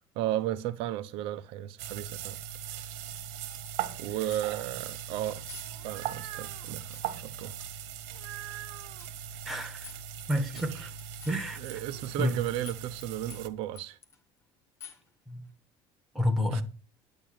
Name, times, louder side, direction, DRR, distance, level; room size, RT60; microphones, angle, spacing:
voice 1, 0.2-2.4 4.0-5.4 5.8-7.5 10.7-10.9 11.6-14.0 16.5-16.6, right 13 dB, 55° right, 0.9 m, -34 dB
sound 1, 1.8-13.5, right 9 dB, 70° right, 1.4 m, -40 dB
sound 2, 3.7-3.9 4.3-4.7 5.5-5.7 6.0-6.1 6.9-7.1 8.1-8.3 9.0-9.2 9.4-9.5 9.8-10.3 10.6-12.4 12.7-13.0 13.3-14.2 14.8-15.1, left 8 dB, 25° left, 1.7 m, -49 dB
sound 3, 5.5-6.7 8.1-9.1 11.9-12.6, right 15 dB, 90° right, 0.9 m, -46 dB
voice 2, 9.4-9.9 10.3-10.9 11.2-11.8 12.2-12.3 15.3-15.4 16.1-16.6, left 1 dB, ahead, 1.6 m, -30 dB
11.0 x 9.0 x 6.6 m
cardioid pair, 180°, 11 cm